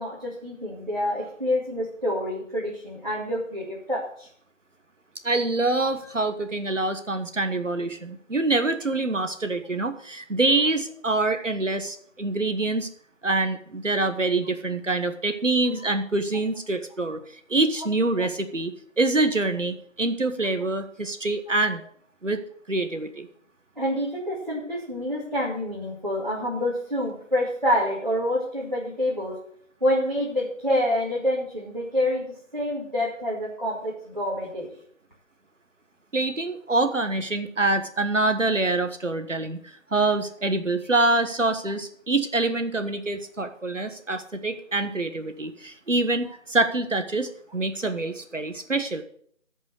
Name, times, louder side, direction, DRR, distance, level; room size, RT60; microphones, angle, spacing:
voice 1, 0.0-4.3 5.8-5.9 11.3-11.4 18.2-18.3 23.8-29.3 29.8-32.3 32.5-34.7, left 1 dB, 35° right, -6 dB, 2.2 m, -27 dB
voice 2, 5.2-12.9 13.2-17.2 17.5-18.7 19.0-21.8 22.2-22.4 22.7-23.3 36.1-49.0, right 2 dB, 70° right, 9 dB, 1.4 m, -25 dB
14.5 x 5.3 x 6.5 m, 0.63 s
figure-of-eight pair, 180°, 39 cm